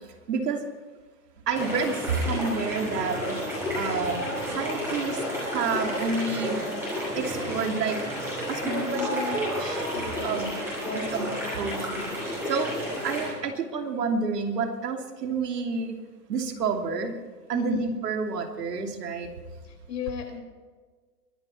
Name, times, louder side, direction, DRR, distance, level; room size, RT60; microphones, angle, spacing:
voice 1, 0.3-0.6 1.5-3.4 3.7-4.3 4.5-6.6 7.2-8.0 8.5-9.8 10.2-10.6 10.9-11.3 11.6-12.7 13.0-16.0 16.3-17.1 17.5-19.3, right 4 dB, 75° right, 4 dB, 2.9 m, -29 dB
sound 1, 1.5-13.3, equal, 5° right, 5.4 m, -31 dB
voice 2, 8.6-9.4 9.9-11.7 17.5-17.8 19.6-20.4, left 7 dB, 80° left, 3 dB, 5.4 m, -36 dB
22.5 x 10.5 x 4.4 m, 1.4 s
hypercardioid pair, 170°, 49 cm